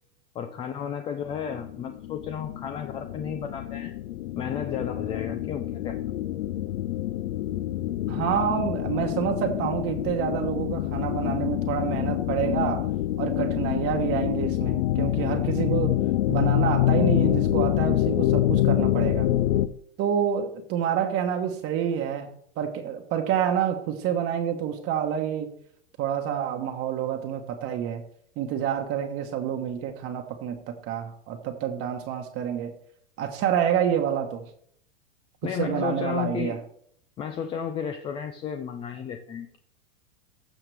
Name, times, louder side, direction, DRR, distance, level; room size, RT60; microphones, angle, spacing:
voice 1, 0.3-3.9 4.4-6.0 35.4-36.6 37.2-39.6, left 8 dB, 15° left, 7 dB, 0.3 m, -33 dB
sound 1, 1.3-19.7, left 13 dB, 65° left, 0.7 m, -26 dB
voice 2, 8.1-12.9 13.2-16.0 16.3-19.3 20.0-22.3 22.6-25.5 26.0-28.0 28.4-32.7 33.2-34.4 35.6-36.6, right 9 dB, 35° right, 4 dB, 1.2 m, -28 dB
15.5 x 5.8 x 3.4 m, 0.65 s
hypercardioid pair, 130°, 38 cm